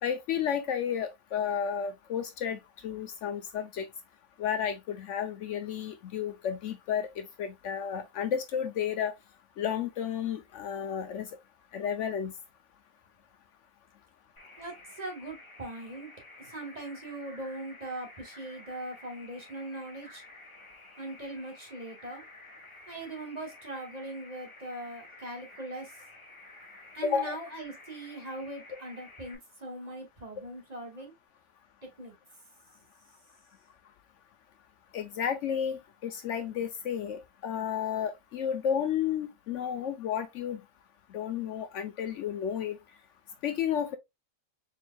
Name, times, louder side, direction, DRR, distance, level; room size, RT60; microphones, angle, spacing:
voice 1, 0.0-3.9 4.4-9.1 9.6-11.3 11.7-12.3 27.0-27.4 34.9-40.6 41.1-42.8 43.4-44.0, left 8 dB, 70° left, 0.9 m, -32 dB
sound 1, 14.4-29.3, left 2 dB, 25° left, 1.3 m, -52 dB
voice 2, 14.6-16.1 16.4-20.2 21.0-22.2 22.9-25.9 26.9-31.1 32.0-32.1, right 2 dB, 30° right, 1.4 m, -40 dB
4.3 x 3.7 x 2.2 m
omnidirectional pair, 1.4 m